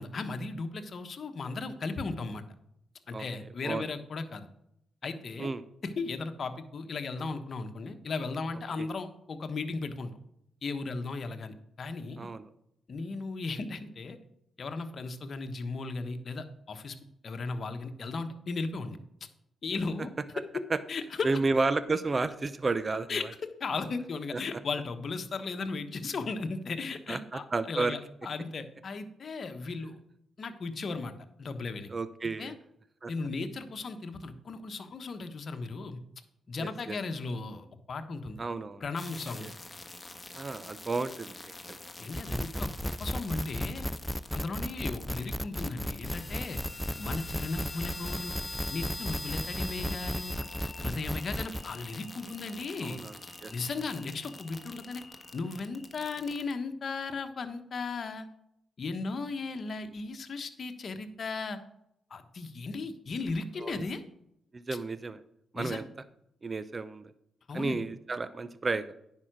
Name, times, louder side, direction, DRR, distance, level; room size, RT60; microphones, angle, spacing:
voice 1, 0.0-2.4 3.1-4.5 5.0-5.5 5.8-10.1 10.6-12.3 12.9-14.2 14.6-17.0 17.2-19.0 19.6-20.1 20.4-20.6 20.9-21.3 23.1-23.2 23.6-30.0 30.4-31.1 31.4-31.9 32.4-32.6 33.1-36.0 36.5-38.4 38.8-39.5 42.0-43.9 44.3-46.6 47.0-48.4 48.7-50.3 50.8-53.0 53.5-55.0 55.3-58.3 58.8-61.6 62.1-64.0 65.5-65.8 67.5-67.8, left 3 dB, 55° left, 8 dB, 1.2 m, -36 dB
voice 2, 21.2-23.2 24.3-24.4 27.1-28.0 31.9-32.5 33.0-33.1 36.6-37.0 38.4-38.8 39.4-39.5 40.3-41.8 52.8-53.1 53.4-53.5 63.6-63.8 64.5-65.2 65.5-65.9 66.4-67.1 67.5-68.9, right 3 dB, 35° right, 14 dB, 0.6 m, -32 dB
sound 1, 39.0-56.5, left 2 dB, 20° left, 1.6 m, -44 dB
sound 2, 42.1-51.6, equal, ahead, 0.4 m, -35 dB
9.8 x 5.7 x 6.2 m, 0.78 s
supercardioid pair, 50°, 0 cm